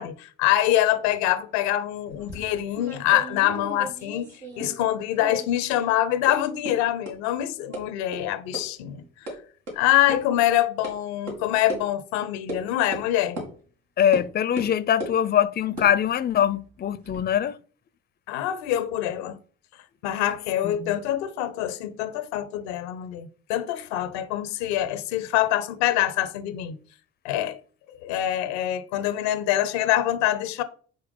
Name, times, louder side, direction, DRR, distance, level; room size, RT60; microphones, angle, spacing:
voice 1, 0.0-9.3 9.7-13.4 18.3-19.4 20.0-26.8 27.2-27.6 27.9-30.6, left 13 dB, 90° left, 0.6 m, -25 dB
sound 1, 2.1-4.9 5.2-5.9 6.3-6.4 6.7-6.8 7.1-7.2 7.7-7.8 8.1-8.2 8.5-8.6 9.0-9.4 9.7-9.8 10.1-10.2 10.8-10.9 11.3-11.4 11.7-11.8 12.5-12.6 12.9-13.1 13.4-13.5 14.1-14.3 14.6-15.2 15.7-17.2, right 1 dB, 85° right, 2.1 m, -36 dB
voice 2, 14.0-17.6 20.6-21.0, left 9 dB, 30° left, 0.4 m, -23 dB
5.3 x 4.4 x 5.1 m
hypercardioid pair, 55°, 31 cm